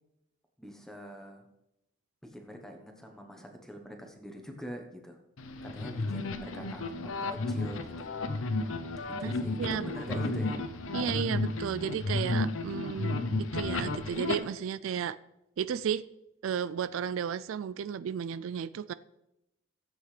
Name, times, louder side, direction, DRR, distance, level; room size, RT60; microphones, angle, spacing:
voice 1, 0.6-1.4 2.2-5.2 5.6-8.1 9.1-10.6 11.6-11.8, equal, ahead, 3 dB, 1.0 m, -44 dB
sound 1, 5.4-14.4, left 2 dB, 75° left, 0.7 m, -33 dB
voice 2, 9.6-10.2 10.9-15.2 15.6-16.0 16.4-18.9, right 8 dB, 75° right, 16 dB, 0.3 m, -33 dB
14.5 x 7.9 x 3.3 m, 0.88 s
head